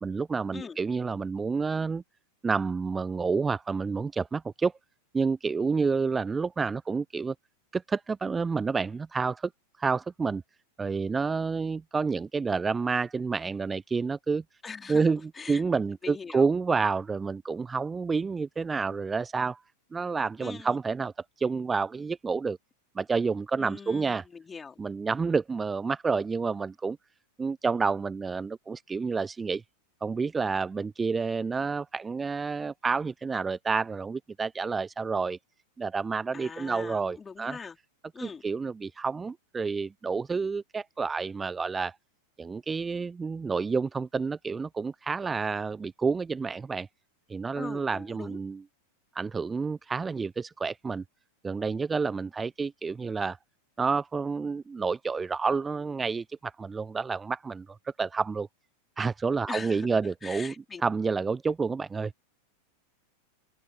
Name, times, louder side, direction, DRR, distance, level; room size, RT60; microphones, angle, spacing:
voice 1, 0.0-2.0 2.4-4.7 5.1-7.3 7.7-9.5 9.8-10.4 10.8-14.4 14.9-15.2 15.5-19.6 19.9-21.1 21.4-22.6 23.0-24.2 24.8-27.0 27.4-29.6 30.0-35.4 35.8-37.6 38.2-42.0 42.4-46.9 47.3-48.6 49.1-51.0 51.4-53.4 53.8-58.5 59.0-60.5 60.8-62.1, right 4 dB, 15° right, 0.7 m, -29 dB
voice 2, 14.6-15.1 15.3-15.6 16.0-16.5 20.4-20.8 23.6-24.8 36.3-37.8 38.1-38.4 47.5-48.4 59.5-60.8, left 5 dB, 15° left, 4.5 m, -41 dB
open air
figure-of-eight pair, 90°, 0 cm